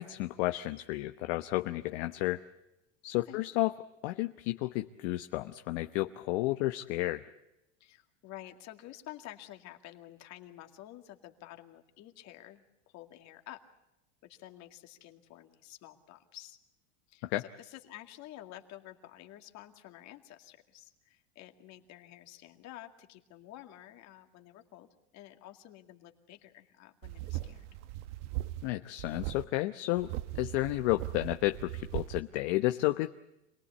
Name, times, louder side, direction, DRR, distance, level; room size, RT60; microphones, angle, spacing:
voice 1, 0.0-2.4 3.0-3.7 4.0-7.2 17.2-17.4 28.6-30.1 30.3-33.2, left 18 dB, 60° left, 8 dB, 1.0 m, -32 dB
voice 2, 7.8-13.6 14.2-16.6 17.1-27.7, left 14 dB, 45° left, 5 dB, 2.3 m, -50 dB
sound 1, 27.0-28.7 29.0-29.4 30.0-32.2, right 16 dB, 65° right, 1.2 m, -39 dB
26.5 x 18.5 x 8.4 m, 0.92 s
supercardioid pair, 130°, 37 cm